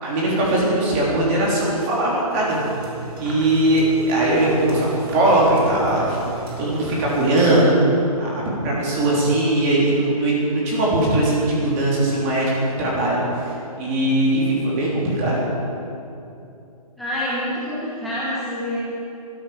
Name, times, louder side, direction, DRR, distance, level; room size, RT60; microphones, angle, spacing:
voice 1, 0.0-2.6 3.2-6.2 6.6-7.8 8.2-8.3 8.6-12.5 12.8-13.2 13.8-15.4, right 1 dB, 25° right, -5 dB, 3.5 m, -20 dB
sound 1, 2.4-7.7, right 4 dB, 40° right, 3.5 m, -35 dB
voice 2, 17.0-18.8, left 1 dB, ahead, -9 dB, 1.3 m, -27 dB
17.5 x 13.0 x 5.1 m, 2.7 s
hypercardioid pair, 165°, 19 cm